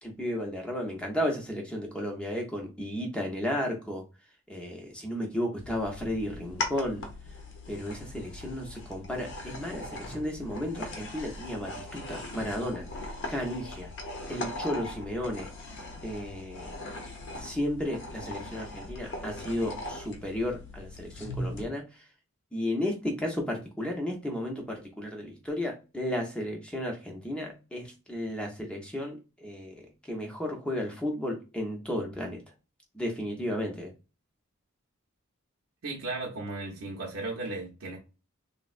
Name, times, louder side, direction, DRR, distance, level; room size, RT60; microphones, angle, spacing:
voice 1, 0.0-4.0 4.5-7.0 7.7-13.9 14.3-15.5 16.0-16.8 17.4-22.0 22.5-32.4 32.9-33.9, left 1 dB, 5° left, 0.6 m, -33 dB
sound 1, 5.6-21.6, left 2 dB, 55° left, 0.6 m, -40 dB
voice 2, 35.8-38.0, right 2 dB, 60° right, 0.6 m, -35 dB
3.3 x 2.0 x 2.4 m
head